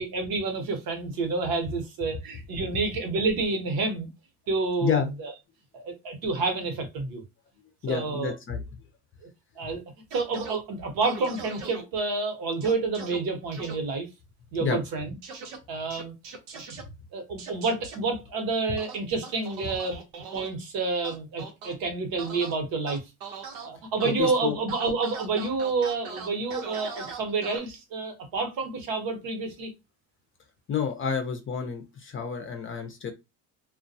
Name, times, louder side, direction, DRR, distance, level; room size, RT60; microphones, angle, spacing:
voice 1, 0.0-4.1 4.5-5.3 5.7-7.2 7.9-8.3 9.6-9.8 10.1-14.1 14.5-15.2 15.7-16.1 17.1-20.0 20.3-23.0 23.6-29.7, right 3 dB, 65° right, 1.0 m, -29 dB
voice 2, 4.8-5.1 7.8-8.6 14.6-14.8 24.0-24.6 30.7-33.1, left 7 dB, 35° left, 0.5 m, -29 dB
sound 1, 10.1-10.6 11.0-11.8 12.6-13.2 13.5-13.7 15.2-15.6 15.9-16.8 17.4-18.0 18.8-20.5 21.0-21.7 22.2-22.5 22.9-23.7 24.0-24.3 24.7-27.6, right 5 dB, 90° right, 0.9 m, -40 dB
2.2 x 2.2 x 2.6 m
cardioid pair, 110°, 39 cm